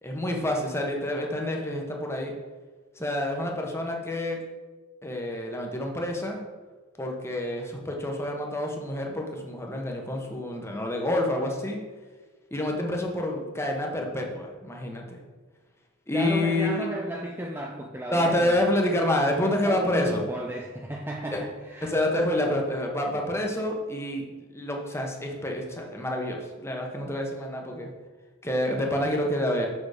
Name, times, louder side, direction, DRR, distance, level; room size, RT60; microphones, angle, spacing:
voice 1, 0.0-2.3 3.0-4.4 5.0-6.4 7.0-11.8 12.5-15.2 16.1-16.9 18.1-20.2 21.3-21.4 21.8-24.3 24.5-27.9 28.4-29.7, left 1 dB, 10° left, 1 dB, 1.0 m, -28 dB
voice 2, 16.1-18.6 19.6-21.9, right 1 dB, 10° right, 1 dB, 0.4 m, -33 dB
6.6 x 6.1 x 4.9 m, 1.3 s
head